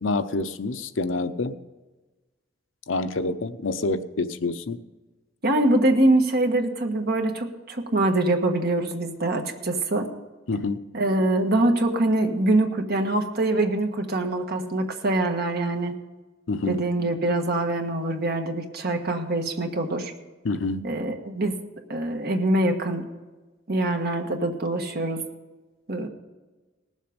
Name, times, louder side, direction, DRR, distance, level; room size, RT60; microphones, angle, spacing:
voice 1, 0.0-1.5 2.9-4.8 10.5-10.8 16.5-16.8 20.4-20.9, left 3 dB, 75° left, 10 dB, 0.7 m, -27 dB
voice 2, 5.4-10.1 10.9-15.9 16.7-20.1 20.8-21.6 21.9-23.1 23.7-25.2 25.9-26.1, right 2 dB, 55° right, 4 dB, 1.5 m, -24 dB
19.0 x 7.4 x 5.3 m, 1.2 s
head